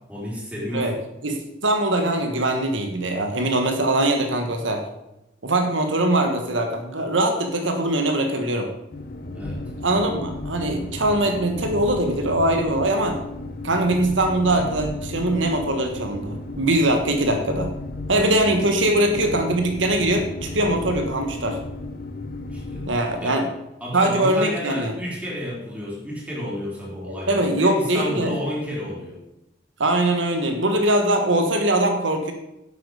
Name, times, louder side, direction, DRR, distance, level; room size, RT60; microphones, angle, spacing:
voice 1, 0.1-1.0 9.3-9.6 22.5-22.9 23.2-23.4 23.8-29.2, equal, 5° right, -5 dB, 3.9 m, -31 dB
voice 2, 1.2-4.8 5.4-8.7 9.8-13.2 13.6-17.7 18.1-21.6 22.9-23.5 23.9-24.9 27.3-28.3 29.8-32.3, right 1 dB, 80° right, 5 dB, 1.5 m, -22 dB
sound 1, 8.9-22.9, left 2 dB, 55° left, 1.0 m, -34 dB
10.5 x 8.1 x 5.0 m, 0.90 s
head